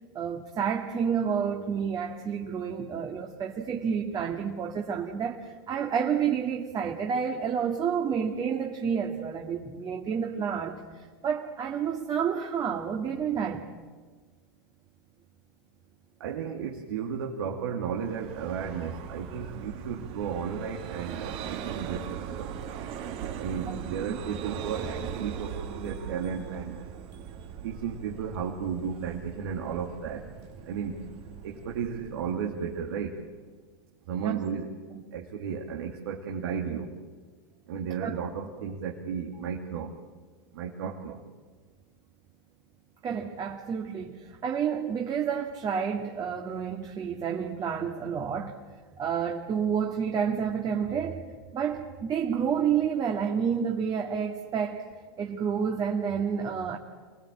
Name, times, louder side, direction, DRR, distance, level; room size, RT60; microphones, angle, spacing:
voice 1, 0.1-13.7 23.7-23.8 34.2-34.4 38.0-38.1 43.0-48.5 49.0-51.3 51.5-54.8 55.2-56.8, right 7 dB, 35° right, 2 dB, 2.0 m, -29 dB
voice 2, 16.2-22.5 23.4-26.8 27.6-30.3 30.7-31.0 31.4-33.1 34.1-34.7 35.1-36.9 37.7-39.9 40.5-41.2, right 7 dB, 75° right, 0 dB, 2.4 m, -34 dB
Vehicle, 17.9-33.4, right 8 dB, 50° right, 2.5 m, -40 dB
25.5 x 19.5 x 8.8 m, 1.4 s
hypercardioid pair, 105°, 12 cm